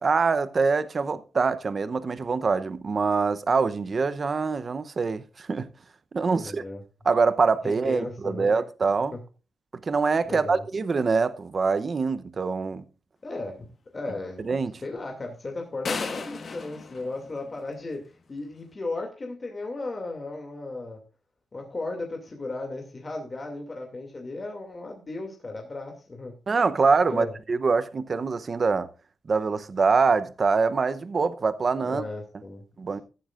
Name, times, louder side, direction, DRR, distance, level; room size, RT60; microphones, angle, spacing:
voice 1, 0.0-5.7 6.1-6.6 7.0-9.1 9.8-12.8 14.4-14.7 26.5-28.9 29.3-32.0 32.8-33.0, right 4 dB, 35° right, 0.7 m, -24 dB
voice 2, 6.3-6.8 7.6-8.6 9.1-9.2 10.3-10.6 13.2-13.7 13.9-14.4 14.8-21.0 21.5-26.4 27.1-27.3 31.8-32.6, left 2 dB, 25° left, 2.5 m, -35 dB
sound 1, 15.9-18.0, left 4 dB, 40° left, 1.4 m, -35 dB
15.0 x 11.5 x 2.5 m
wide cardioid pair, 150°, 0 cm